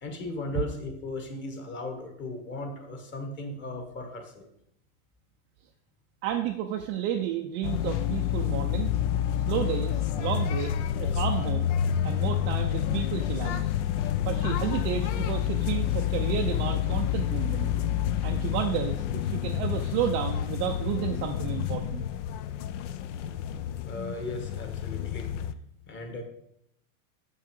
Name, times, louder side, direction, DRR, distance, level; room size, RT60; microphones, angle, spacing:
voice 1, 0.0-4.5 23.8-25.3 25.9-26.2, left 2 dB, 25° left, 4 dB, 1.6 m, -37 dB
voice 2, 6.2-8.9 9.5-11.7 12.0-17.7 18.2-22.1, right 10 dB, 30° right, 3 dB, 0.5 m, -32 dB
sound 1, 7.6-25.5, left 10 dB, 55° left, 0.6 m, -29 dB
7.1 x 6.5 x 5.3 m, 0.73 s
supercardioid pair, 145°, 43 cm